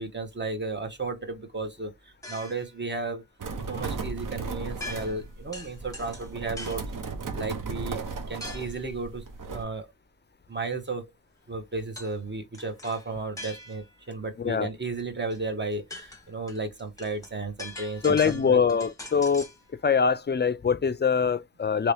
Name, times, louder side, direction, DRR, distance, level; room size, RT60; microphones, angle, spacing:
voice 1, 0.0-3.2 3.7-6.8 7.3-8.0 8.3-9.2 9.5-9.9 10.5-11.1 11.5-18.6, right 3 dB, 35° right, 1.0 m, -34 dB
sound 1, 2.2-2.7 4.8-5.3 5.5-6.9 8.4-8.8 12.0-12.2 12.5-14.0 15.3-15.4 15.7-19.6, left 2 dB, 10° left, 1.0 m, -42 dB
sound 2, 3.4-9.6, right 4 dB, 75° right, 0.8 m, -36 dB
voice 2, 14.4-14.7 18.0-19.5 19.8-21.9, left 6 dB, 35° left, 0.4 m, -23 dB
3.0 x 2.8 x 3.3 m
wide cardioid pair, 85°, 32 cm